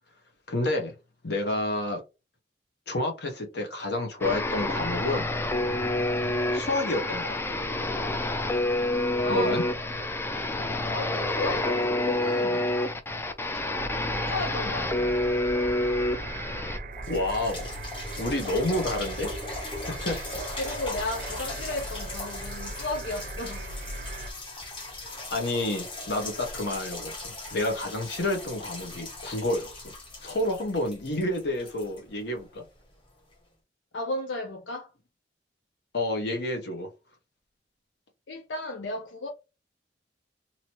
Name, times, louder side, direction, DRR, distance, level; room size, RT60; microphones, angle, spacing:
voice 1, 0.5-0.9 1.2-2.0 2.9-5.3 6.5-7.6 9.3-9.6 17.1-17.7 18.2-19.3 19.8-20.2 25.3-29.9 30.2-32.6 35.9-36.9, left 1 dB, 65° left, 1.1 m, -29 dB
sound 1, 4.2-16.8, left 1 dB, 15° left, 0.4 m, -28 dB
voice 2, 9.1-9.6 10.9-12.8 14.2-15.2 20.6-23.7 33.9-34.9 38.3-39.3, left 2 dB, 90° left, 0.6 m, -34 dB
sound 2, 13.7-24.3, right 2 dB, 50° right, 0.6 m, -39 dB
sound 3, 16.4-16.5 16.9-32.7 33.3-33.4, left 2 dB, 30° left, 1.1 m, -39 dB
3.0 x 2.8 x 3.0 m
head